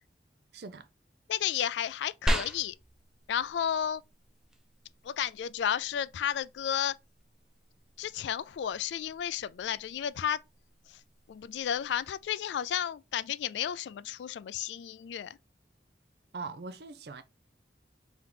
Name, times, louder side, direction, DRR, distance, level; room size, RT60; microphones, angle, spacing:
voice 1, 0.5-0.9 16.3-17.2, right 4 dB, 70° right, 0.5 m, -41 dB
voice 2, 1.3-2.7 3.3-4.0 5.0-7.0 8.0-10.4 10.9-11.0 11.3-15.4, left 9 dB, 85° left, 0.3 m, -32 dB
sound 1, 2.3-12.3, equal, 5° right, 0.4 m, -40 dB
3.6 x 2.9 x 3.7 m
head